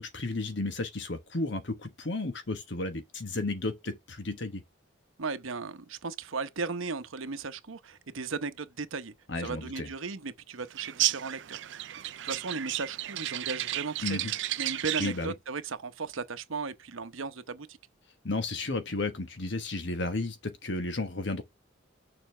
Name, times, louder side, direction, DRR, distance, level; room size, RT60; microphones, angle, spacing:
voice 1, 0.0-4.6 9.3-9.9 14.0-14.3 15.0-15.3 18.2-21.4, left 2 dB, 60° left, 1.2 m, -33 dB
voice 2, 5.2-11.9 12.2-14.3 14.6-17.8, right 4 dB, 80° right, 0.9 m, -36 dB
sound 1, 10.8-15.2, right 14 dB, 60° right, 0.4 m, -33 dB
6.9 x 4.1 x 6.5 m
head